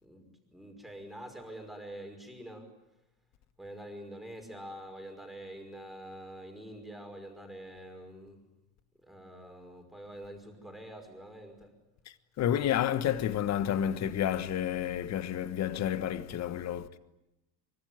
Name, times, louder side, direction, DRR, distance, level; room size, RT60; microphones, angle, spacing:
voice 1, 0.0-2.7 3.6-8.4 9.0-11.7, right 1 dB, ahead, 5.4 m, -46 dB
voice 2, 12.4-17.0, left 10 dB, 35° left, 1.5 m, -30 dB
25.5 x 24.0 x 9.4 m
supercardioid pair, 140°, 48 cm